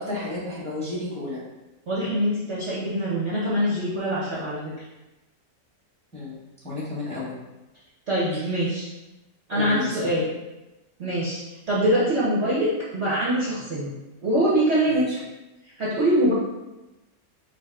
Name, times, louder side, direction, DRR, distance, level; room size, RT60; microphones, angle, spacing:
voice 1, 0.0-1.4 6.1-6.4 6.6-7.3 8.3-8.7 9.5-10.0 14.9-15.2, left 2 dB, 5° left, -7 dB, 1.2 m, -32 dB
voice 2, 1.9-4.7 8.1-8.9 9.5-10.3 11.0-11.4 11.7-13.9 14.2-15.0 15.8-16.3, right 1 dB, 50° right, -8 dB, 1.0 m, -23 dB
5.1 x 2.6 x 3.6 m, 1.0 s
omnidirectional pair, 1.9 m